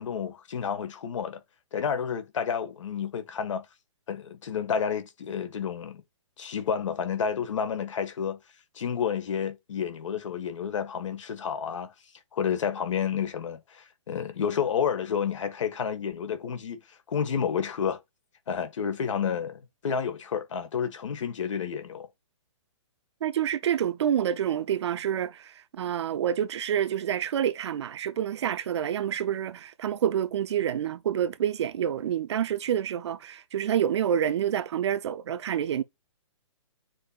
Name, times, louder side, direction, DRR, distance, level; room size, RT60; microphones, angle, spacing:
voice 1, 0.0-1.4 1.7-3.7 4.1-6.0 6.4-8.4 8.8-11.9 12.3-16.8 17.1-18.0 18.5-22.1, left 7 dB, 65° left, 1.7 m, -30 dB
voice 2, 23.2-35.8, right 9 dB, 55° right, 0.7 m, -28 dB
9.5 x 4.6 x 2.5 m
hypercardioid pair, 155°, 17 cm